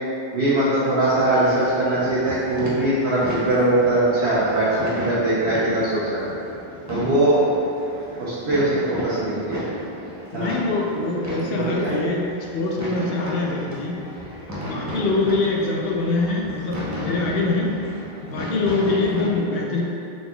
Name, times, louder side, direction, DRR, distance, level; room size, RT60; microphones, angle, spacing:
voice 1, 0.3-6.2 6.9-7.4 8.2-9.6 10.3-10.5 11.5-11.9, right 1 dB, 90° right, -11 dB, 1.0 m, -21 dB
sound 1, 1.0-19.3, left 1 dB, 25° right, 0.4 m, -34 dB
voice 2, 6.9-7.4 10.3-12.3 12.5-14.0 14.6-17.7 18.2-19.8, left 3 dB, 70° left, -1 dB, 0.8 m, -24 dB
3.9 x 3.7 x 2.3 m, 2.7 s
omnidirectional pair, 1.0 m